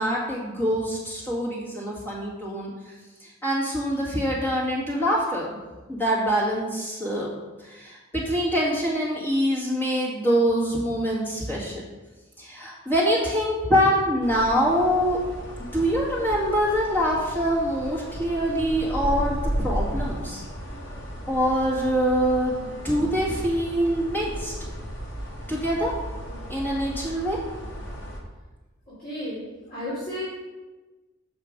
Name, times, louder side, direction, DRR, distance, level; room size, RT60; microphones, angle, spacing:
voice 1, 0.0-2.7 3.2-5.5 5.9-7.3 7.6-11.8 12.4-15.2 15.7-20.4 21.3-24.5 25.5-25.9 26.5-27.4, equal, 10° left, -6 dB, 2.0 m, -24 dB
sound 1, 14.2-28.2, equal, 60° left, 1.3 m, -34 dB
voice 2, 29.0-30.2, equal, 45° left, -10 dB, 2.9 m, -33 dB
7.3 x 5.6 x 5.2 m, 1.2 s
head